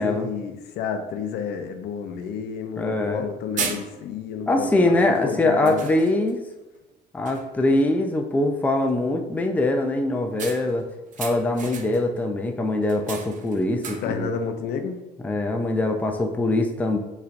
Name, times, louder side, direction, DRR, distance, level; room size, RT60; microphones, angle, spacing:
voice 1, 0.0-5.9 14.0-15.0, left 6 dB, 75° left, 6 dB, 0.6 m, -31 dB
sound 1, 1.7-1.8 2.2-2.3 3.0-3.2 3.6-4.3 5.0-5.2 5.7-6.4 6.8-7.0 7.3-7.7 10.4-12.2 12.8-14.3, right 5 dB, 50° right, 0.6 m, -35 dB
voice 2, 2.8-3.3 4.5-6.4 7.1-10.9 11.2-14.3 15.2-17.0, left 2 dB, 10° left, 4 dB, 0.4 m, -23 dB
5.8 x 3.2 x 2.5 m, 1.0 s
cardioid pair, 110°, 17 cm